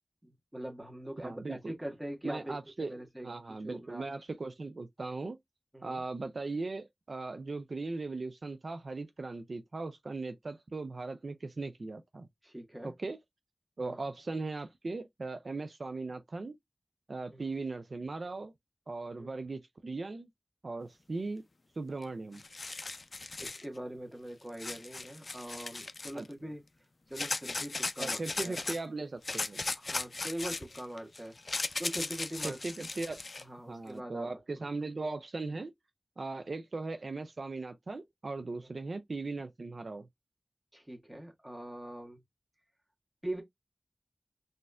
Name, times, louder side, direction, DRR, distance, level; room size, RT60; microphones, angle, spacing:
voice 1, 0.2-3.3 3.6-4.1 5.7-6.0 12.4-12.9 13.8-14.0 17.3-17.6 19.1-19.3 23.4-26.6 27.1-28.6 29.8-32.6 33.4-34.7 38.5-38.6 40.7-42.2 43.2-43.4, right 1 dB, 15° right, 1.3 m, -42 dB
voice 2, 1.2-1.8 2.2-2.9 3.2-5.4 5.8-12.3 12.8-13.2 13.8-16.5 17.1-18.5 18.9-20.3 20.6-21.4 21.8-22.4 26.1-26.3 28.0-29.6 32.4-33.2 33.7-35.7 36.2-40.1, right 3 dB, 75° right, 0.4 m, -38 dB
sound 1, 22.0-22.1 22.3-23.6 24.6-26.3 27.1-28.8 29.2-33.4, left 3 dB, 65° left, 0.3 m, -37 dB
4.0 x 2.5 x 2.2 m
wide cardioid pair, 60°, 0 cm